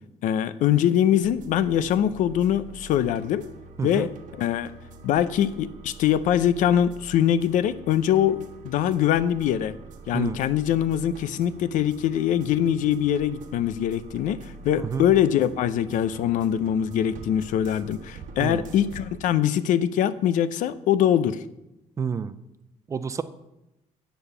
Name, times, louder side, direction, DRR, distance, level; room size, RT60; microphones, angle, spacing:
voice 1, 0.2-3.4 3.8-4.7 5.0-9.7 10.1-21.4, left 10 dB, 90° left, 15 dB, 0.6 m, -23 dB
sound 1, 1.2-19.2, right 3 dB, 80° right, 1.2 m, -45 dB
voice 2, 3.8-4.1 10.1-10.4 14.8-15.1 18.4-18.6 22.0-22.3 22.9-23.2, right 6 dB, 25° right, 13 dB, 0.4 m, -28 dB
9.1 x 6.9 x 6.7 m, 0.91 s
cardioid pair, 175°, 13 cm